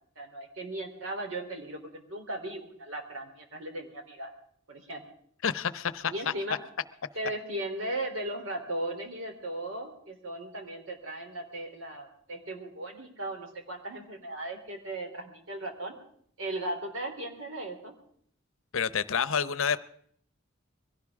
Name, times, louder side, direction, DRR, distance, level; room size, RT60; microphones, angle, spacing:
voice 1, 0.1-4.3 4.7-5.0 6.1-6.6 7.1-15.9 16.4-17.9, right 1 dB, 75° right, 3 dB, 3.4 m, -37 dB
voice 2, 5.4-6.1 18.7-19.8, left 7 dB, 75° left, 16 dB, 0.7 m, -28 dB
22.5 x 17.0 x 3.6 m, 0.64 s
head